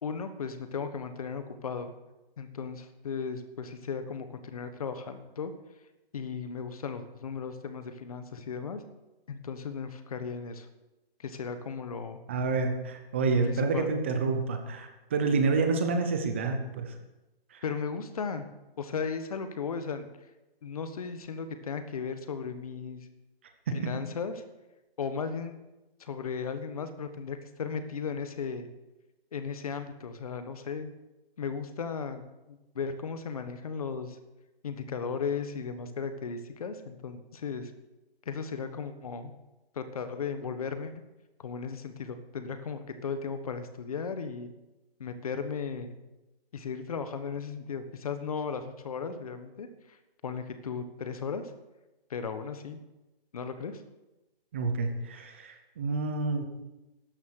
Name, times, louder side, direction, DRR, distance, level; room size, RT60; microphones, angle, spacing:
voice 1, 0.0-1.9 2.4-5.5 6.1-8.8 9.3-10.7 11.2-12.2 13.3-13.9 17.6-18.5 18.8-20.1 20.6-23.1 23.7-24.4 25.0-25.6 26.0-28.7 29.3-30.9 31.4-32.2 32.5-34.2 34.6-37.7 38.2-39.3 39.7-40.9 41.4-44.5 45.0-46.0 46.5-50.0 50.2-51.5 52.1-52.8 53.3-53.8, left 5 dB, 35° left, 9 dB, 1.3 m, -36 dB
voice 2, 12.3-16.9 17.5-17.6 23.7-23.9 54.5-56.5, right 4 dB, 10° right, 6 dB, 0.7 m, -28 dB
13.0 x 10.5 x 6.6 m, 1.0 s
hypercardioid pair, 170°, 31 cm